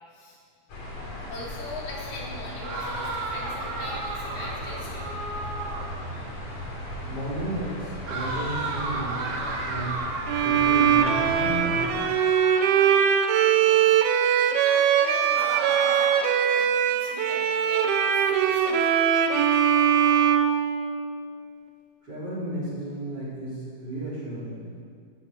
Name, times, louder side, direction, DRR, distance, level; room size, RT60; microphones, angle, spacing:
sound 1, 0.7-11.9, left 1 dB, 50° left, 4.2 m, -37 dB
voice 1, 1.3-5.1 13.6-13.8 14.2-19.6, left 1 dB, 80° left, -5 dB, 5.6 m, -41 dB
sound 2, 2.6-6.0 8.1-13.3 15.3-16.4, right 3 dB, 45° right, 2.7 m, -34 dB
voice 2, 7.1-10.0 10.4-12.1 22.0-24.8, right 1 dB, 25° right, -7 dB, 4.8 m, -33 dB
Bowed string instrument, 10.3-21.3, right 8 dB, 85° right, 2.8 m, -21 dB
13.0 x 11.0 x 9.5 m, 2.1 s
omnidirectional pair, 4.4 m